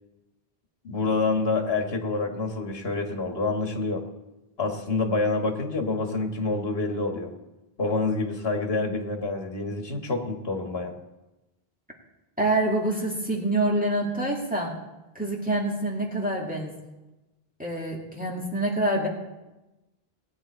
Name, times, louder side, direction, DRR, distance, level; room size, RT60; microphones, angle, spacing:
voice 1, 0.8-4.0 4.6-7.3 7.8-10.9, left 3 dB, 70° left, 3 dB, 1.8 m, -27 dB
voice 2, 12.4-14.7 15.1-16.7 17.6-19.1, right 1 dB, 10° right, -3 dB, 2.1 m, -26 dB
18.5 x 9.1 x 4.4 m, 1.0 s
omnidirectional pair, 1.1 m